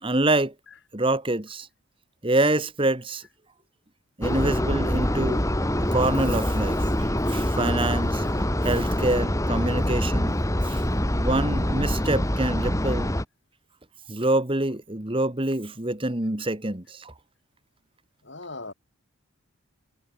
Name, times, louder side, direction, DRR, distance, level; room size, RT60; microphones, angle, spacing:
voice 1, 0.0-0.5 0.9-1.7 2.2-3.2 4.2-5.4 5.8-10.4 10.6-10.8 11.2-13.1 14.1-17.1, right 2 dB, 25° right, 1.6 m, -26 dB
sound 1, 4.2-13.2, left 1 dB, 15° left, 2.7 m, -25 dB
voice 2, 18.2-18.7, left 3 dB, 55° left, 4.1 m, -40 dB
head